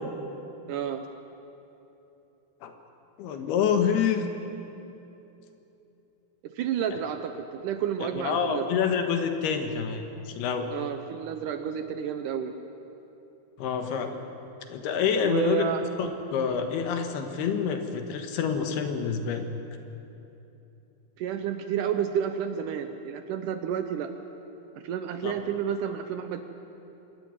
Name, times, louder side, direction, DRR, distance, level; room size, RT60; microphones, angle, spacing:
voice 1, 0.7-1.0 6.4-8.7 10.7-12.5 15.2-15.9 21.2-24.1 24.7-26.4, right 9 dB, 80° right, 8 dB, 1.9 m, -30 dB
voice 2, 3.2-4.3 8.0-10.7 13.6-14.2 14.7-15.7 16.0-19.5 25.2-25.3, left 7 dB, 75° left, 6 dB, 3.3 m, -27 dB
25.0 x 13.0 x 9.6 m, 3.0 s
omnidirectional pair, 4.7 m